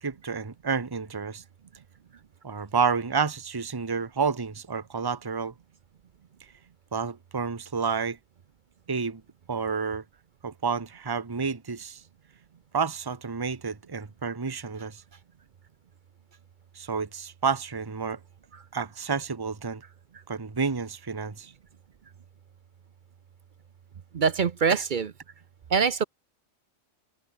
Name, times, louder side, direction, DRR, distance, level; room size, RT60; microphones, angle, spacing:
voice 1, 0.0-1.4 2.4-5.5 6.9-8.2 8.9-9.2 9.5-10.0 10.4-12.0 12.7-15.0 16.7-18.2 18.7-19.8 20.3-21.5 24.7-24.8, right 5 dB, 20° right, 1.0 m, -30 dB
voice 2, 24.1-25.1 25.7-26.0, right 6 dB, 45° right, 0.7 m, -24 dB
omnidirectional pair, 1.3 m